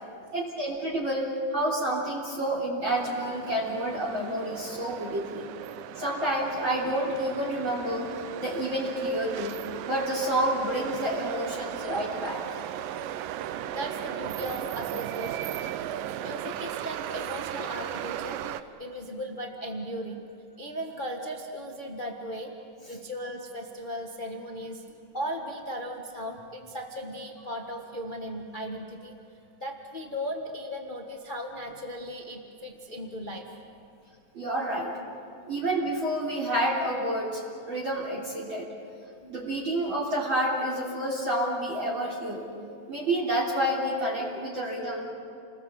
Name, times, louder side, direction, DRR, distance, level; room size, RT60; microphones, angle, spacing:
voice 1, 0.3-5.5 6.0-8.1 8.4-9.6 9.9-12.6 34.3-35.0 35.5-38.7 39.3-42.5 42.9-45.1, right 1 dB, 35° right, -4 dB, 3.8 m, -29 dB
sound 1, 2.9-18.6, right 11 dB, 90° right, 2.4 m, -36 dB
voice 2, 13.3-15.6 16.2-20.2 20.6-29.1 29.6-33.5 35.4-35.5 39.2-39.3, equal, 80° left, 2 dB, 0.4 m, -37 dB
29.5 x 20.5 x 7.6 m, 2.4 s
omnidirectional pair, 3.8 m